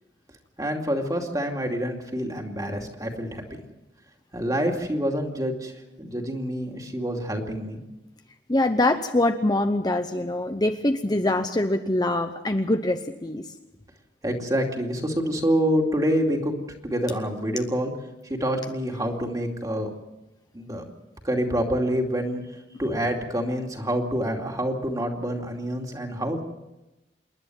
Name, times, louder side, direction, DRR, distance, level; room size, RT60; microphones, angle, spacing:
voice 1, 0.6-3.6 4.3-5.7 6.0-7.8 14.2-16.5 16.8-17.9 18.3-19.9 20.5-20.8 21.2-22.4 22.8-26.4, equal, 20° right, 2 dB, 2.5 m, -27 dB
voice 2, 8.5-13.5, left 1 dB, 25° left, 6 dB, 0.8 m, -24 dB
27.5 x 11.0 x 9.2 m, 1.0 s
head